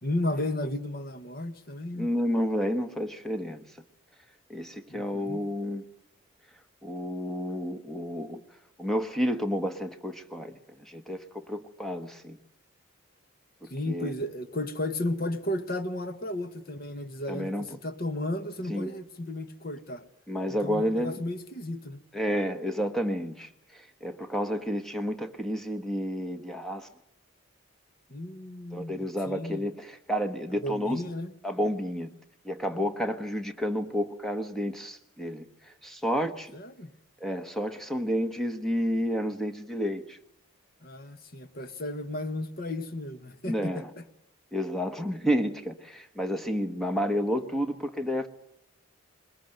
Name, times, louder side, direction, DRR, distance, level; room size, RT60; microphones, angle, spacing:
voice 1, 0.0-2.1 4.9-5.4 13.7-20.0 20.6-22.0 28.1-29.7 30.6-31.3 36.5-36.9 40.8-43.8, left 1 dB, 45° left, 1.3 m, -34 dB
voice 2, 1.9-3.6 4.5-5.8 6.8-8.4 8.8-12.4 13.6-14.1 17.3-17.6 18.7-18.9 20.3-21.2 22.1-26.9 28.7-31.0 31.4-32.1 32.4-36.5 37.2-40.2 43.4-43.9 44.5-48.3, equal, ahead, 1.2 m, -30 dB
21.5 x 21.0 x 7.9 m
head